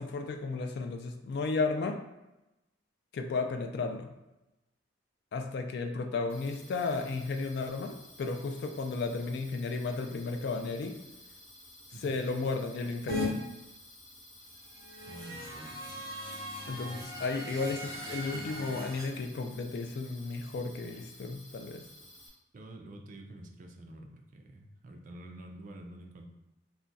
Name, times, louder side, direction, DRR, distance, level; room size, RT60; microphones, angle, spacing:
voice 1, 0.0-2.0 3.1-4.1 5.3-11.0 12.0-13.4 16.7-21.8, left 3 dB, 60° left, 5 dB, 0.3 m, -34 dB
sound 1, 6.3-22.3, left 1 dB, 30° left, 1.0 m, -54 dB
voice 2, 11.9-12.2 15.1-16.0 17.4-17.6 22.5-26.3, right 1 dB, 45° right, 3 dB, 0.4 m, -48 dB
sound 2, 13.1-13.3 14.7-19.0, left 1 dB, 20° right, 1.0 m, -39 dB
2.3 x 2.2 x 3.9 m, 0.97 s
head